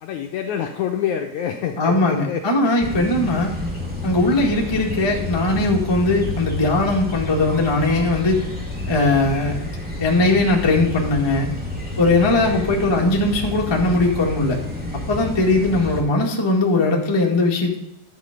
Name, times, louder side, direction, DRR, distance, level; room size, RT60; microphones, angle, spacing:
voice 1, 0.0-2.9 5.5-5.6 12.3-12.7, left 9 dB, 80° left, 4 dB, 1.7 m, -27 dB
voice 2, 1.8-3.5 4.0-8.4 8.9-9.6 10.0-11.5 12.0-14.6 15.1-17.8, left 2 dB, 35° left, -1 dB, 0.4 m, -19 dB
sound 1, 2.8-16.0, left 2 dB, 5° right, 1.1 m, -29 dB
11.5 x 7.6 x 5.2 m, 0.88 s
omnidirectional pair, 4.2 m